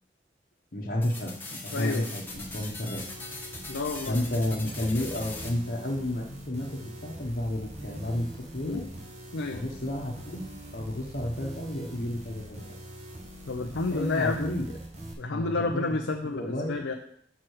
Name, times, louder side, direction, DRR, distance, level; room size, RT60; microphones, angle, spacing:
voice 1, 0.7-3.0 4.1-8.8 9.5-10.4 10.7-12.6 13.9-14.7 15.3-15.8 16.2-16.8, left 1 dB, 50° left, -4 dB, 1.0 m, -31 dB
sound 1, 1.0-5.5, left 3 dB, 10° left, 1.2 m, -41 dB
voice 2, 1.7-2.1 3.7-4.2 8.6-8.8 9.3-9.6 13.5-14.5 15.2-17.0, left 3 dB, 85° left, 3 dB, 0.6 m, -30 dB
sound 2, 2.3-15.1, right 1 dB, 40° right, 1.2 m, -43 dB
6.0 x 4.5 x 6.4 m, 0.69 s
head